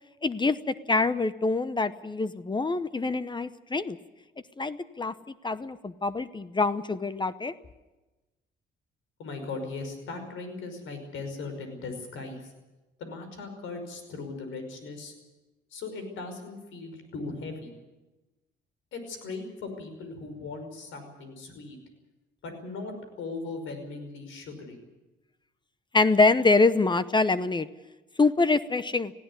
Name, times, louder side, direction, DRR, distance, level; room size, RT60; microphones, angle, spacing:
voice 1, 0.2-4.0 4.6-5.1 5.4-7.5 25.9-27.7 28.2-29.1, left 3 dB, 25° left, 14 dB, 0.8 m, -25 dB
voice 2, 9.2-12.5 13.0-15.1 15.7-17.7 18.9-21.8 22.4-24.8, left 3 dB, 80° left, 7 dB, 5.4 m, -38 dB
18.5 x 16.5 x 9.7 m, 1.1 s
cardioid pair, 90°, 20 cm